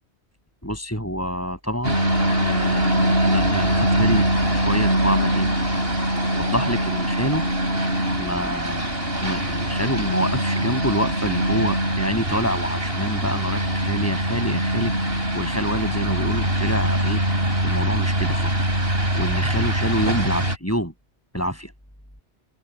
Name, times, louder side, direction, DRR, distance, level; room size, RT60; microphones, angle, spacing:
voice 1, 0.6-2.0 2.4-4.3 4.5-5.5 6.3-7.4 8.2-8.9 9.2-14.9 15.3-17.2 17.6-18.7 19.1-20.9 21.3-21.7, equal, 10° left, 6.8 m, -27 dB
sound 1, 1.8-20.6, right 1 dB, 55° right, 8.3 m, -23 dB
omnidirectional pair, 1.2 m